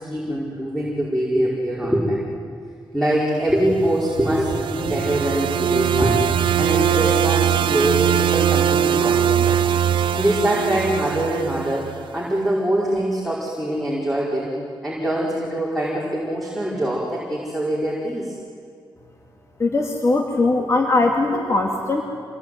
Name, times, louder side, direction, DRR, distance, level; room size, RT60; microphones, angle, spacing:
voice 1, 0.0-2.6 2.9-9.6 9.9-14.5 14.8-18.4, right 1 dB, ahead, -5 dB, 5.2 m, -23 dB
sound 1, 3.9-12.1, right 9 dB, 80° right, 0.6 m, -21 dB
voice 2, 19.6-22.0, left 2 dB, 35° left, 1 dB, 2.5 m, -20 dB
27.0 x 21.5 x 9.5 m, 2.3 s
cardioid pair, 100°, 8 cm